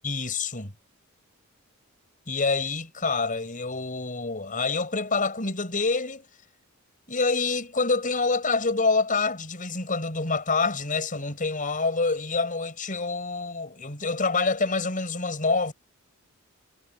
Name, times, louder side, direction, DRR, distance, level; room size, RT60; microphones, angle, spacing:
voice 1, 0.0-0.7 2.3-6.2 7.1-15.7, left 3 dB, 40° left, 6.0 m, -26 dB
head